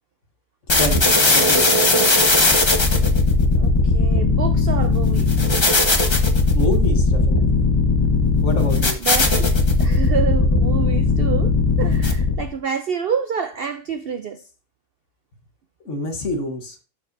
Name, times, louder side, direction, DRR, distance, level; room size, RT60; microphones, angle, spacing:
sound 1, 0.7-12.5, left 3 dB, 25° left, 0.7 m, -17 dB
voice 1, 0.8-1.8 6.5-7.6 8.4-9.0 15.9-16.8, left 1 dB, 50° left, 1.5 m, -27 dB
voice 2, 3.6-5.3 9.0-9.5 9.8-14.4, right 6 dB, 80° right, 0.5 m, -27 dB
12.0 x 4.7 x 2.6 m
omnidirectional pair, 1.7 m